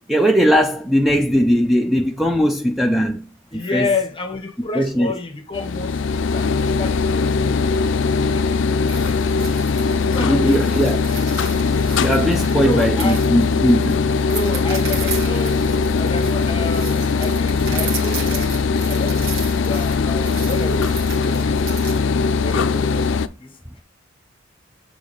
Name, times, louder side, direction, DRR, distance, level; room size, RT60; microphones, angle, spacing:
voice 1, 0.1-3.2 3.5-3.9 4.7-5.1 10.2-11.0 12.0-14.0, equal, ahead, 0.5 m, -18 dB
voice 2, 3.5-7.7 8.3-9.4 9.7-11.1 12.6-13.2 14.3-18.5 18.9-19.2 19.6-22.1 22.4-23.1 23.4-23.8, left 3 dB, 25° left, 0.9 m, -30 dB
sound 1, 5.5-23.3, left 4 dB, 65° left, 0.4 m, -20 dB
sound 2, 8.9-22.0, right 5 dB, 70° right, 1.8 m, -35 dB
6.9 x 3.7 x 4.0 m
head